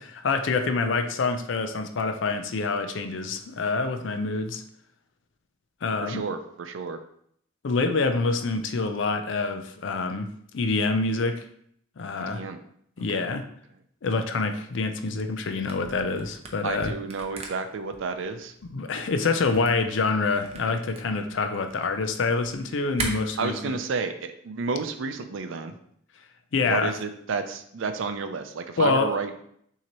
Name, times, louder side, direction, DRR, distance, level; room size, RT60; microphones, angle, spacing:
voice 1, 0.2-4.6 5.8-6.2 7.6-10.3 10.5-11.5 12.0-12.4 13.0-13.4 14.0-16.9 18.7-23.8 26.5-26.9 28.8-29.1, left 3 dB, 65° left, 7 dB, 0.5 m, -26 dB
voice 2, 6.0-7.0 12.1-12.6 13.0-13.3 16.6-18.5 23.4-25.7 26.7-29.4, right 4 dB, 75° right, 8 dB, 0.5 m, -31 dB
Camera, 15.6-23.1, right 3 dB, 30° right, 0.6 m, -39 dB
5.9 x 2.8 x 2.9 m, 0.67 s
head